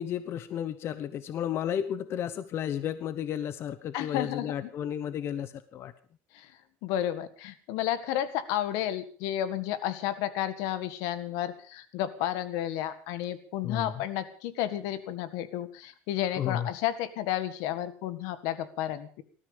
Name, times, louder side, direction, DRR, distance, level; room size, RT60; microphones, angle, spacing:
voice 1, 0.0-5.9 13.6-14.0 16.4-16.7, left 9 dB, 45° left, 13 dB, 1.0 m, -33 dB
voice 2, 3.9-4.7 6.3-6.5 6.8-19.2, left 12 dB, 80° left, 13 dB, 1.8 m, -32 dB
19.0 x 14.0 x 5.1 m, 0.42 s
cardioid pair, 135°, 6 cm